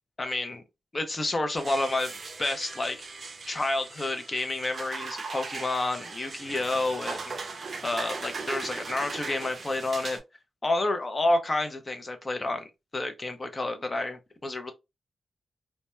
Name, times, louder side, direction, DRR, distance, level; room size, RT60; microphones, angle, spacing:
voice 1, 0.2-0.6 0.9-2.1 2.4-3.1 3.5-10.2 10.6-14.7, left 2 dB, 30° left, 0.5 m, -30 dB
sound 1, 1.6-10.2, right 4 dB, 50° right, 0.4 m, -39 dB
2.2 x 2.1 x 2.9 m
wide cardioid pair, 100°, 0 cm